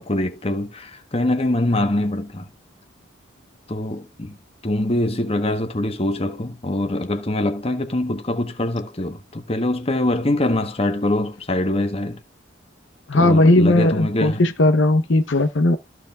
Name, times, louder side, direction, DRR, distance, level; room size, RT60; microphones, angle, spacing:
voice 1, 0.0-2.5 3.7-4.4 4.6-12.2 13.1-14.4, left 1 dB, 30° left, 1.4 m, -23 dB
voice 2, 13.1-15.8, left 1 dB, 70° left, 0.9 m, -17 dB
14.0 x 4.8 x 3.6 m
head